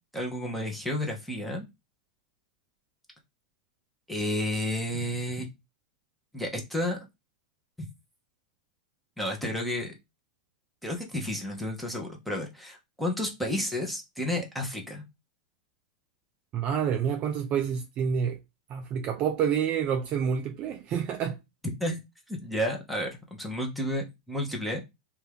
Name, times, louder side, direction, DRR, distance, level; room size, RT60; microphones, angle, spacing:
voice 1, 0.1-1.7 4.1-5.5 6.3-7.0 7.8-7.9 9.2-9.9 10.8-15.0 21.8-22.0 22.3-24.8, left 1 dB, ahead, 0.8 m, -31 dB
voice 2, 16.5-18.4 18.7-21.4, right 7 dB, 35° right, 0.3 m, -28 dB
2.7 x 2.3 x 3.3 m
supercardioid pair, 140°, 4 cm